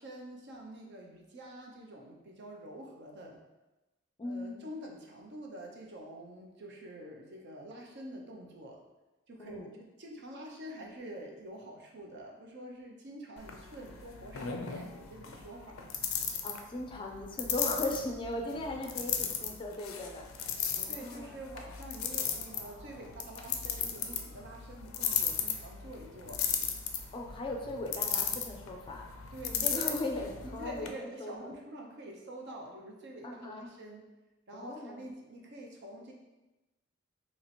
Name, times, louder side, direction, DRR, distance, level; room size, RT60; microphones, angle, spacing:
voice 1, 0.0-3.4 4.2-8.8 9.3-15.9 20.9-26.4 29.3-30.0 30.4-34.1 34.5-36.1, right 1 dB, 60° right, 0 dB, 0.7 m, -47 dB
voice 2, 4.2-4.6 9.4-9.7 16.4-20.3 20.8-21.4 27.1-29.1 29.6-31.5 33.2-33.7 34.5-35.0, left 2 dB, 25° left, 1 dB, 0.4 m, -38 dB
sound 1, 13.4-30.9, left 7 dB, 85° left, 0.4 m, -36 dB
3.0 x 2.9 x 4.2 m, 1.1 s
head